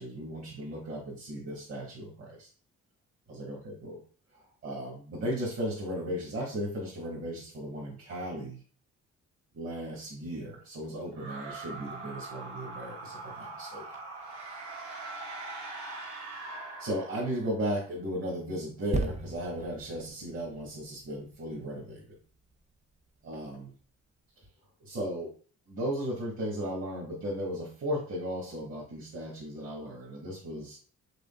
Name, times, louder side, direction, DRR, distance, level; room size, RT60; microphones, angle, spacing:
voice 1, 0.0-2.5 3.3-4.0 4.3-8.6 9.5-13.8 16.3-22.1 23.2-23.7 24.8-25.3 25.7-30.8, equal, 45° right, -4 dB, 1.6 m, -36 dB
sound 1, 11.1-17.6, right 3 dB, 65° right, 1.6 m, -42 dB
sound 2, 18.9-22.5 23.1-23.2, right 3 dB, 25° right, 0.5 m, -37 dB
5.0 x 3.5 x 2.3 m, 0.40 s
cardioid pair, 90°, 30 cm